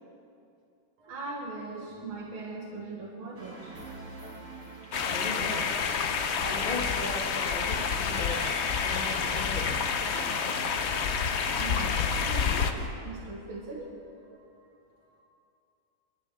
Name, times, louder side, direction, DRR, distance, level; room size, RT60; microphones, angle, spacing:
voice 1, 1.0-3.8 11.6-12.7 13.0-14.6 15.1-15.2, right 3 dB, 90° right, -2 dB, 2.3 m, -40 dB
sound 1, 3.4-12.9, right 2 dB, 35° right, 2.7 m, -43 dB
sound 2, 4.9-12.7, left 6 dB, 90° left, 0.6 m, -29 dB
voice 2, 5.0-5.7 6.4-8.5 8.8-9.8, left 2 dB, 25° left, -5 dB, 1.7 m, -37 dB
29.0 x 12.0 x 3.5 m, 2.6 s
omnidirectional pair, 2.2 m